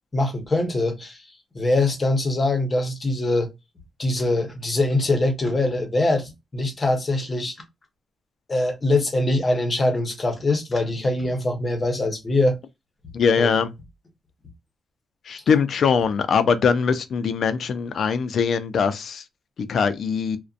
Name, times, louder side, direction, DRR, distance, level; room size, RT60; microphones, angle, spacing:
voice 1, 0.1-1.2 1.5-3.5 4.0-7.6 8.5-12.6 13.4-13.5, left 2 dB, 25° left, 0.7 m, -23 dB
voice 2, 13.1-13.7 15.2-19.3 19.6-20.4, left 6 dB, 55° left, 0.4 m, -22 dB
2.5 x 2.1 x 2.4 m
cardioid pair, 120°, 0 cm